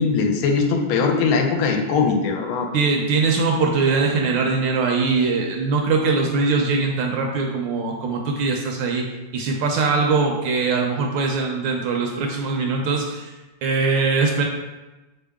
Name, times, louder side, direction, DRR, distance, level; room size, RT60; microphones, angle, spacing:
voice 1, 0.0-2.7, left 5 dB, 85° left, 2 dB, 1.5 m, -20 dB
voice 2, 2.7-9.1 9.3-13.3 13.6-14.4, right 4 dB, 75° right, 1 dB, 1.2 m, -21 dB
3.9 x 3.6 x 3.4 m, 1.1 s
omnidirectional pair, 2.3 m